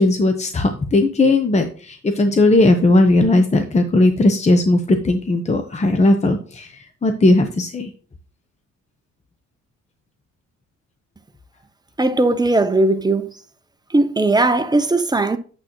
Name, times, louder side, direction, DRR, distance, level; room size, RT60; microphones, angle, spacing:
voice 1, 0.0-7.9, left 2 dB, 20° left, 0.9 m, -17 dB
voice 2, 12.0-13.3 13.9-15.4, right 2 dB, 15° right, 0.8 m, -18 dB
8.7 x 7.4 x 3.1 m
cardioid pair, 90°, 30 cm